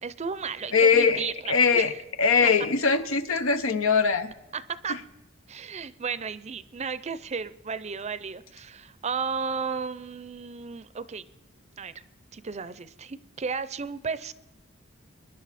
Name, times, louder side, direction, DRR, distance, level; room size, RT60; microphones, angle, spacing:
voice 1, 0.0-2.0 2.4-2.5 4.5-5.0 5.5-11.3 11.8-11.9 12.3-14.3, right 5 dB, 35° right, 15 dB, 0.5 m, -34 dB
voice 2, 0.7-1.9 2.2-4.3, left 5 dB, 85° left, 10 dB, 1.0 m, -21 dB
24.0 x 11.0 x 4.2 m, 1.0 s
head